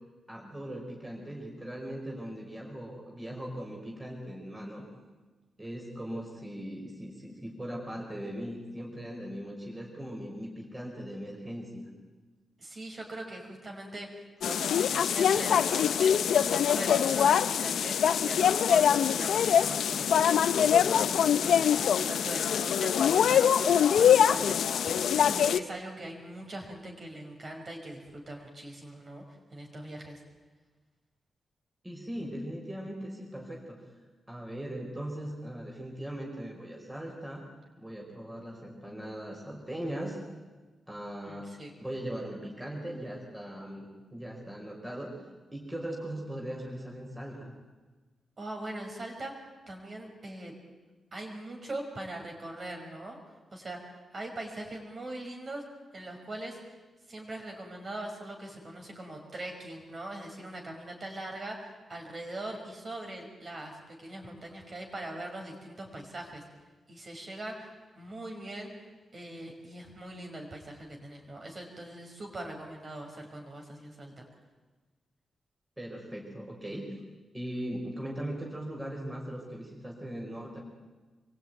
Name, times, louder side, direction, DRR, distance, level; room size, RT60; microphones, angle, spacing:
voice 1, 0.3-4.8 5.6-11.9 31.8-33.8 34.3-37.4 37.8-40.2 40.9-41.5 41.8-43.9 44.1-45.1 45.5-47.5 75.8-77.0 77.3-80.6, right 1 dB, 10° right, -2 dB, 4.8 m, -39 dB
voice 2, 12.6-29.2 29.5-30.2 41.2-41.7 48.4-49.4 49.7-50.5 51.1-53.2 53.5-55.6 55.9-56.6 57.1-66.4 66.9-67.7 68.0-74.3, right 1 dB, 30° right, 2 dB, 5.6 m, -41 dB
sound 1, 14.4-25.6, left 8 dB, 85° left, 0.8 m, -24 dB
26.5 x 23.0 x 9.3 m, 1.3 s
wide cardioid pair, 180°, 0 cm